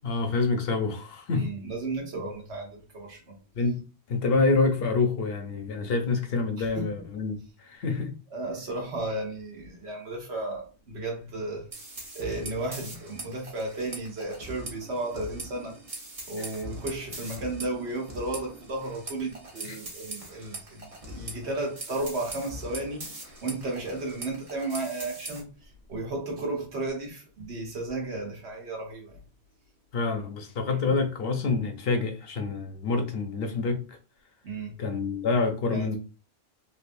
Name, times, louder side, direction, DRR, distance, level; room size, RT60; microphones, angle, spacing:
voice 1, 0.0-1.5 3.6-8.2 16.4-16.5 19.6-19.8 29.9-34.0 34.8-36.0, left 3 dB, 65° left, 0.8 m, -27 dB
voice 2, 1.3-3.4 6.6-6.9 8.3-11.7 12.1-15.8 16.3-23.0 23.4-25.5 25.9-29.2 34.4-34.8 35.7-36.0, right 2 dB, 80° right, 1.3 m, -34 dB
sound 1, 11.7-25.4, right 1 dB, 35° right, 0.9 m, -42 dB
3.4 x 2.6 x 2.5 m
omnidirectional pair, 1.1 m